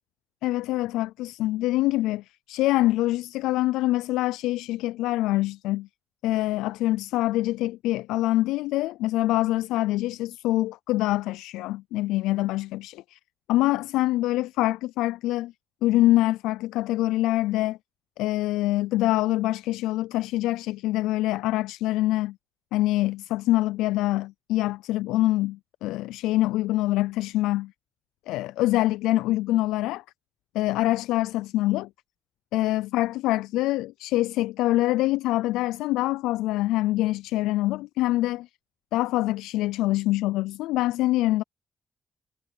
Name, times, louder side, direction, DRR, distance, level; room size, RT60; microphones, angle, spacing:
voice 1, 0.4-5.9 6.2-13.2 13.5-15.5 15.8-17.8 18.2-22.4 22.7-27.7 28.3-30.0 30.5-31.9 32.5-38.5 38.9-41.4, left 16 dB, 85° left, 0.3 m, -25 dB
hypercardioid pair, 45°, 0 cm